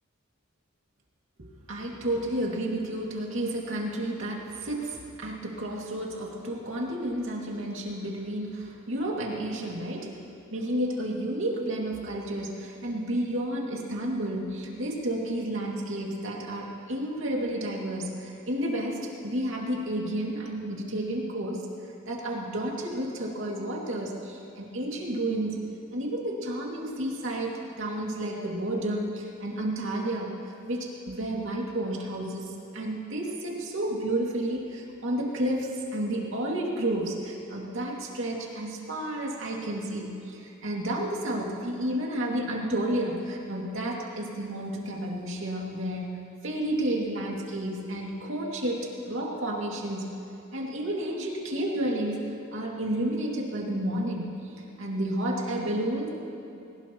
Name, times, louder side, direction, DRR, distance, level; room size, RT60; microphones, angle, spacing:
voice 1, 1.4-10.2 10.5-21.7 22.1-25.6 25.9-27.5 27.8-30.3 30.7-50.1 50.5-52.2 52.5-56.1, right 1 dB, 65° right, -2 dB, 2.5 m, -31 dB
21.0 x 19.0 x 3.1 m, 2.8 s
head